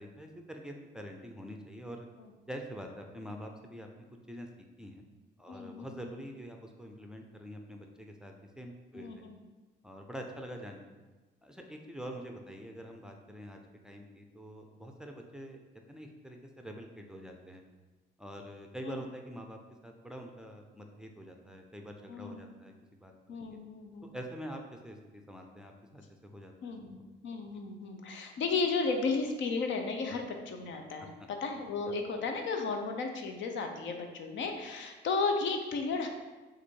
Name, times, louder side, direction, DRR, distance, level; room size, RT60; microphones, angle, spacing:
voice 1, 0.0-2.1 2.5-3.9 4.3-4.5 4.8-5.0 5.4-9.3 9.8-10.8 11.4-15.6 15.9-17.6 18.2-23.1 24.1-26.7 30.1-30.2 32.0-32.1, equal, 5° right, 2 dB, 0.4 m, -45 dB
voice 2, 5.5-6.2 8.9-9.4 18.8-19.0 22.1-22.6 23.3-24.1 26.6-27.0 27.2-31.1 31.4-36.1, left 4 dB, 70° left, 4 dB, 0.6 m, -34 dB
4.1 x 2.5 x 4.5 m, 1.2 s
cardioid pair, 90°, 20 cm